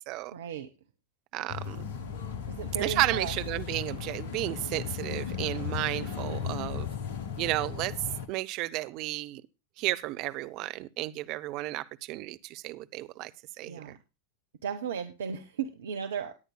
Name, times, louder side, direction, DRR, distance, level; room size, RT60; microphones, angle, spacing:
voice 1, 0.3-0.7 2.5-3.4 13.6-14.0 14.6-16.4, right 7 dB, 60° right, 1.2 m, -35 dB
voice 2, 1.3-1.9 2.8-6.9 7.4-7.9 8.3-9.4 9.8-13.3 13.6-14.0, right 18 dB, 40° right, 0.8 m, -32 dB
sound 1, 1.5-8.3, left 7 dB, 50° left, 1.6 m, -36 dB
18.5 x 9.9 x 2.2 m
figure-of-eight pair, 90°, 0 cm